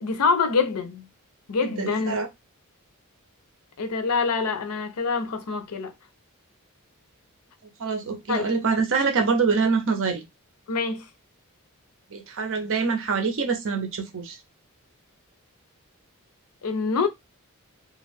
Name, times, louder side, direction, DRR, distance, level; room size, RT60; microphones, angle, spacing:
voice 1, 0.0-1.1 1.5-2.2 3.8-5.9 8.3-8.5 10.7-11.1 16.6-17.1, left 4 dB, 85° left, 0.6 m, -25 dB
voice 2, 1.6-2.3 7.8-10.2 12.1-14.4, right 5 dB, 60° right, 0.7 m, -25 dB
2.4 x 2.3 x 3.3 m
head